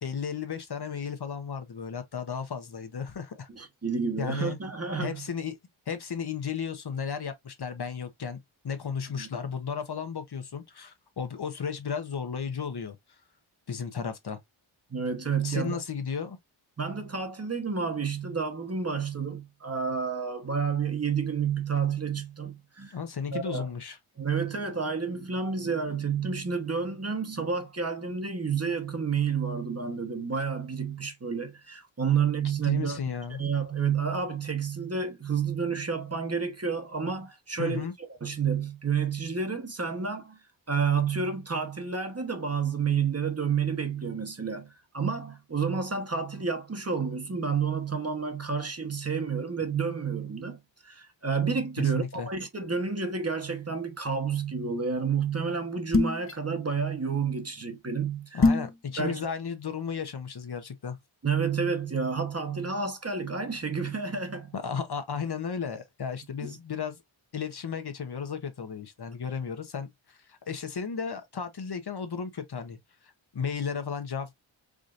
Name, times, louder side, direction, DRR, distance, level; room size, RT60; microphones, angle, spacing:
voice 1, 0.0-3.5 4.2-4.6 5.0-5.6 5.9-8.4 8.6-13.0 13.7-14.4 15.4-16.4 22.9-24.0 32.6-33.4 37.6-37.9 51.8-52.3 58.3-61.0 64.5-67.0 67.3-72.8 73.3-74.3, left 6 dB, 50° left, 0.9 m, -34 dB
voice 2, 3.5-5.2 9.2-9.3 14.9-15.8 16.8-23.0 23.3-23.7 24.2-33.0 33.4-40.4 40.7-50.6 50.8-58.5 59.0-59.2 61.2-64.5 66.4-66.6, right 6 dB, 30° right, 1.1 m, -30 dB
sound 1, 55.9-56.3 58.4-58.7, left 3 dB, 25° left, 0.8 m, -22 dB
4.9 x 2.7 x 2.5 m
wide cardioid pair, 80°, 49 cm